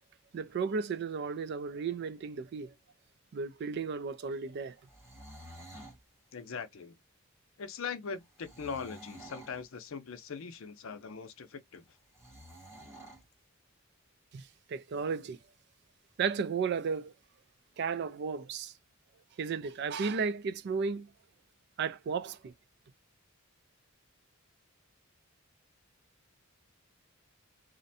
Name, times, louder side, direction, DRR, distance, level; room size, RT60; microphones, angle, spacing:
voice 1, 0.3-2.7 3.3-4.7 14.3-15.4 16.2-17.1 17.8-18.7 19.4-21.1 21.8-22.5, right 5 dB, 55° right, 0.3 m, -34 dB
sound 1, 4.8-6.0 8.4-9.6 12.1-13.2, right 1 dB, 15° right, 0.7 m, -50 dB
voice 2, 6.3-7.0 7.6-11.8, left 5 dB, 70° left, 0.5 m, -41 dB
2.5 x 2.1 x 2.6 m
head